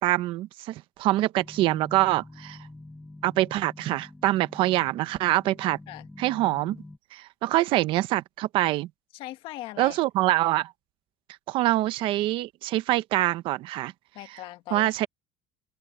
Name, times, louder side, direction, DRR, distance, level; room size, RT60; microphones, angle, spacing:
voice 1, 0.0-2.6 3.2-5.8 6.2-6.8 7.1-8.9 9.8-10.7 11.5-13.9 14.7-15.1, right 16 dB, 55° right, 0.8 m, -25 dB
sound 1, 1.4-7.0, left 2 dB, 5° left, 2.3 m, -46 dB
voice 2, 9.1-10.0 14.1-15.1, left 15 dB, 60° left, 1.6 m, -40 dB
open air
cardioid pair, 150°, 10 cm